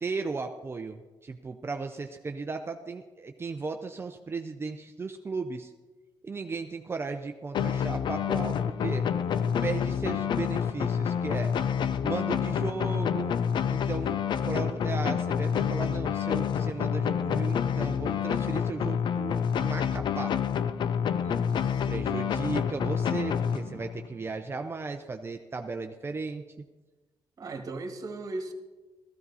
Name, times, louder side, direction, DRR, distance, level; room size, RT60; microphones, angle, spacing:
voice 1, 0.0-5.7 6.2-9.1 9.6-11.5 12.0-13.3 13.7-14.2 14.4-20.4 21.9-26.4, right 4 dB, 30° right, 5 dB, 0.6 m, -35 dB
sound 1, 7.5-24.1, left 8 dB, 70° left, 0.5 m, -28 dB
voice 2, 21.2-21.9 23.6-23.9 27.4-28.5, right 3 dB, 45° right, 5 dB, 1.7 m, -38 dB
14.0 x 13.0 x 4.1 m, 1.2 s
cardioid pair, 90°, 8 cm